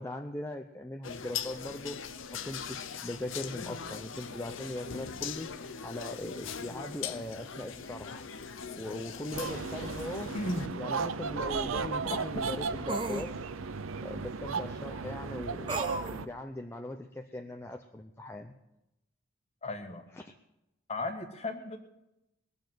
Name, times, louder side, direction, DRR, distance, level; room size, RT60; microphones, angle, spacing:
voice 1, 0.0-2.0 2.3-8.2 8.8-10.3 10.8-13.4 14.0-15.8 16.1-18.5 20.1-20.3, left 1 dB, 10° left, 3 dB, 0.6 m, -40 dB
sound 1, 1.0-10.7, left 6 dB, 60° left, 0.8 m, -41 dB
sound 2, 9.3-16.3, right 5 dB, 70° right, 0.6 m, -35 dB
voice 2, 10.3-10.7 12.1-12.2 19.6-20.0 20.9-21.8, left 2 dB, 30° left, 5 dB, 1.5 m, -35 dB
sound 3, 10.5-10.6 12.9-13.3 15.7-16.2, right 2 dB, 25° right, 0.8 m, -34 dB
20.5 x 7.0 x 7.8 m, 0.90 s
head